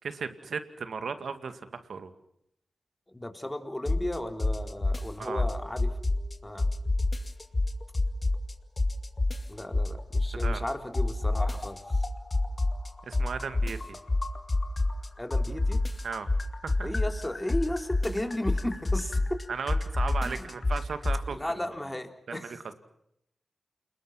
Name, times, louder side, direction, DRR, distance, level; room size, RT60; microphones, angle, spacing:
voice 1, 0.0-2.1 5.2-5.5 10.4-10.6 13.0-14.0 16.0-16.3 16.6-16.9 19.5-21.5 22.3-22.7, right 5 dB, 80° right, 10 dB, 2.1 m, -36 dB
voice 2, 3.1-5.9 6.4-6.7 9.5-12.0 15.2-15.8 16.8-19.4 20.2-20.5 21.3-22.5, left 1 dB, 15° left, 5 dB, 3.8 m, -35 dB
sound 1, 3.9-4.1 4.4-6.3 6.6-8.5 8.8-10.7 10.9-15.1 15.3-21.2, left 2 dB, 35° left, 2.3 m, -27 dB
29.0 x 21.0 x 5.9 m, 0.76 s
cardioid pair, 55°, 0 cm